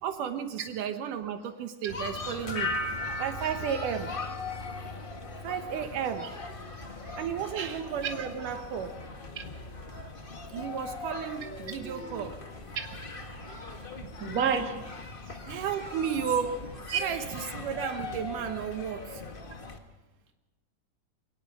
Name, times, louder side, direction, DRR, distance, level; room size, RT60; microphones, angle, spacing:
voice 1, 0.0-2.8 3.1-4.1 5.4-6.3 7.2-9.0 10.5-12.4 14.0-14.1 15.5-16.6 16.9-19.2, right 8 dB, 75° right, 8 dB, 2.4 m, -33 dB
sound 1, 1.9-19.8, left 3 dB, 60° left, 0.5 m, -40 dB
sound 2, 2.5-5.4 5.7-6.2, left 2 dB, 30° left, 2.4 m, -37 dB
voice 2, 14.2-14.8 15.3-15.4 16.9-17.0, right 7 dB, 30° right, 3 dB, 2.1 m, -30 dB
23.5 x 19.0 x 6.0 m, 1.1 s
omnidirectional pair, 3.9 m